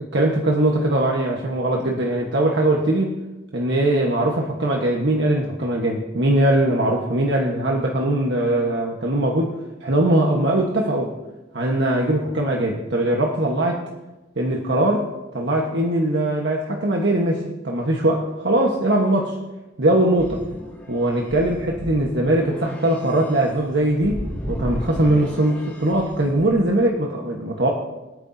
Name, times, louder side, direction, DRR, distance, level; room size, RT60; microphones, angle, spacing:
voice 1, 0.1-3.2 3.5-9.5 9.8-11.1 11.5-13.8 14.4-15.1 15.3-19.4 19.8-20.5 20.9-24.2 24.5-27.7, right 1 dB, 70° right, -1 dB, 1.4 m, -21 dB
sound 1, 20.2-26.9, equal, 10° left, 2.0 m, -35 dB
26.0 x 8.9 x 2.8 m, 1.1 s
head